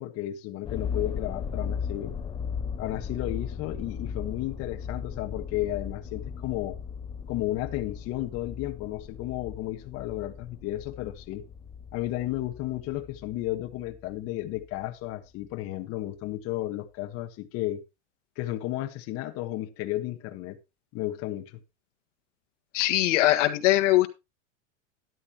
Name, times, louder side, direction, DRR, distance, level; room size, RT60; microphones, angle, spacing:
voice 1, 0.0-2.1 2.8-6.8 7.3-11.4 11.9-17.8 18.4-20.6 20.9-21.6, left 15 dB, 40° left, 1.4 m, -33 dB
sound 1, 0.6-14.8 15.4-15.5, left 6 dB, 15° left, 0.5 m, -37 dB
voice 2, 22.7-24.1, left 16 dB, 70° left, 1.6 m, -21 dB
13.0 x 11.0 x 2.9 m
supercardioid pair, 145°, 38 cm